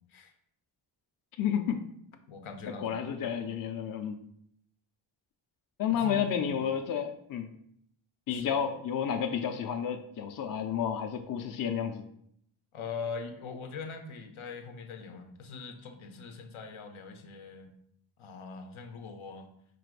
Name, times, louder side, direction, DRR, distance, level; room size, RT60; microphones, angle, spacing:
voice 1, 1.4-1.8 2.8-4.2 5.8-7.5 8.3-12.1, left 8 dB, 45° left, 6 dB, 0.5 m, -31 dB
voice 2, 2.3-2.9 5.9-6.7 8.3-8.6 12.7-17.7 18.2-19.5, left 5 dB, 85° left, 6 dB, 0.7 m, -42 dB
4.5 x 2.5 x 4.6 m, 0.70 s
wide cardioid pair, 130°, 48 cm